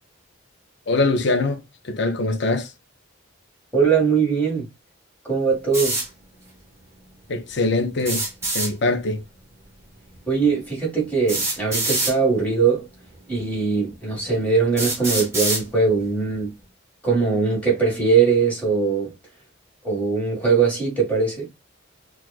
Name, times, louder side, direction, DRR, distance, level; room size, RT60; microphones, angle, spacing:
voice 1, 0.9-2.7 7.3-8.2 8.5-9.2, left 2 dB, 55° left, 0.6 m, -23 dB
voice 2, 3.7-4.7 5.2-6.0 10.3-12.9 13.3-16.5 17.0-19.1 19.8-21.5, right 5 dB, 5° left, 1.8 m, -21 dB
sound 1, 5.7-6.1 8.0-8.7 10.1-10.2 11.3-12.1 13.1-13.2 13.9-14.0 14.8-15.6, right 2 dB, 15° right, 1.8 m, -24 dB
6.0 x 2.4 x 2.4 m
head